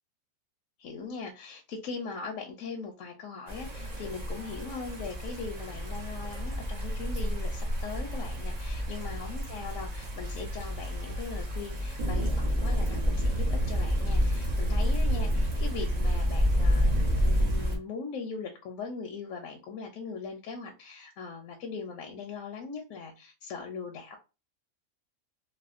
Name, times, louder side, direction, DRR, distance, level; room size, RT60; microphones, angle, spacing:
voice 1, 0.8-24.2, left 5 dB, 75° left, 1.0 m, -40 dB
sound 1, 3.5-17.8, equal, 45° right, 0.5 m, -29 dB
3.4 x 2.1 x 2.4 m
omnidirectional pair, 1.5 m